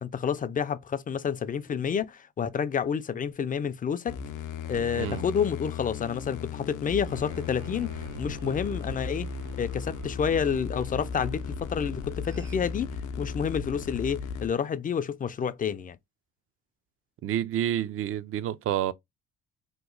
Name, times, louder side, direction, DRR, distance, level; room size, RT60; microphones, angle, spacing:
voice 1, 0.0-4.2 4.7-9.3 9.6-16.0, left 7 dB, 30° left, 0.4 m, -29 dB
sound 1, 4.1-14.5, left 5 dB, 85° left, 0.6 m, -36 dB
sound 2, 7.1-12.6, right 2 dB, 85° right, 1.4 m, -46 dB
voice 2, 17.2-18.9, right 11 dB, 45° right, 0.4 m, -29 dB
3.0 x 2.1 x 3.7 m
cardioid pair, 90°, 30 cm